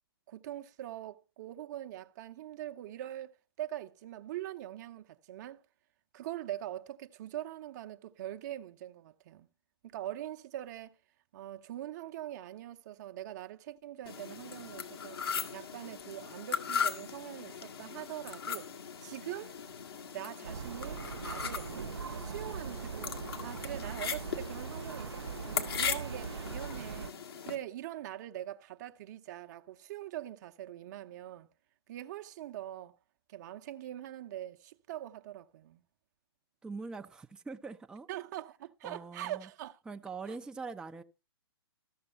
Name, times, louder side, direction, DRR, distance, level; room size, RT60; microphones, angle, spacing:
voice 1, 0.3-3.3 3.6-5.6 6.1-9.5 9.8-11.0 11.3-15.2 15.5-18.7 19.0-19.6 20.1-21.7 22.1-23.2 23.4-27.1 27.4-31.5 31.9-33.0 33.3-35.8 38.1-39.8 40.3-40.4, right 13 dB, 45° right, 0.8 m, -43 dB
fork scraping teeth, 14.1-27.6, left 6 dB, 70° left, 2.0 m, -39 dB
sound 1, 20.4-27.1, right 6 dB, 75° right, 0.7 m, -41 dB
voice 2, 36.6-38.1 38.8-39.5 39.9-41.0, right 4 dB, 5° right, 0.6 m, -43 dB
14.0 x 6.9 x 5.4 m
figure-of-eight pair, 125°, 13 cm